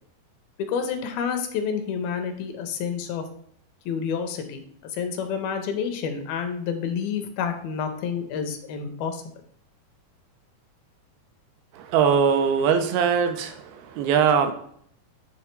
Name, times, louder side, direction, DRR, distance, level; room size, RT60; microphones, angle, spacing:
voice 1, 0.6-3.2 3.9-4.6 4.9-9.2, left 6 dB, 80° left, 6 dB, 2.6 m, -29 dB
voice 2, 11.7-14.5, right 7 dB, 85° right, 7 dB, 2.5 m, -21 dB
9.4 x 3.5 x 4.4 m, 0.65 s
omnidirectional pair, 4.4 m